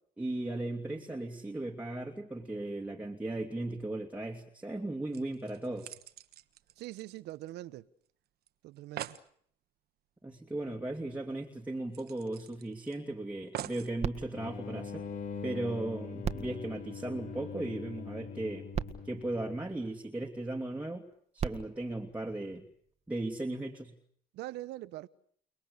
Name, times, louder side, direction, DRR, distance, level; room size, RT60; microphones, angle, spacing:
voice 1, 0.2-6.0 10.2-15.1 15.4-18.7 19.0-21.0 21.3-22.6 23.1-23.9, right 2 dB, 10° right, 2.7 m, -37 dB
sound 1, 4.8-4.9 5.1-7.8 8.1-8.2 8.5-8.6 8.8-9.3 10.8-10.9 11.2-11.3 11.9-12.9 13.5-14.0 14.7-14.8, right 12 dB, 70° right, 1.4 m, -44 dB
voice 2, 6.8-7.8 8.6-9.2 24.3-25.1, right 16 dB, 85° right, 1.1 m, -42 dB
sound 2, 14.0-15.6 16.2-17.8 18.4-18.5 18.7-20.3 21.1-23.0 23.7-23.8, right 7 dB, 40° right, 1.7 m, -41 dB
sound 3, 14.3-19.7, left 6 dB, 55° left, 2.9 m, -42 dB
30.0 x 21.0 x 6.9 m
cardioid pair, 110°, 17 cm